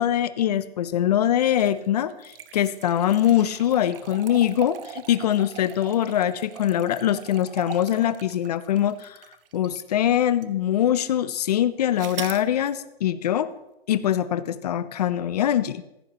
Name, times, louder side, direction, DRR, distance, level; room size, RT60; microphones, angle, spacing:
voice 1, 0.0-9.2 9.5-13.5 13.9-15.8, left 11 dB, 40° left, 15 dB, 0.5 m, -23 dB
sound 1, 1.5-9.9 10.4-10.5 12.0-12.5, right 9 dB, 65° right, 0.7 m, -40 dB
15.0 x 8.4 x 2.9 m, 0.91 s
hypercardioid pair, 165°, 31 cm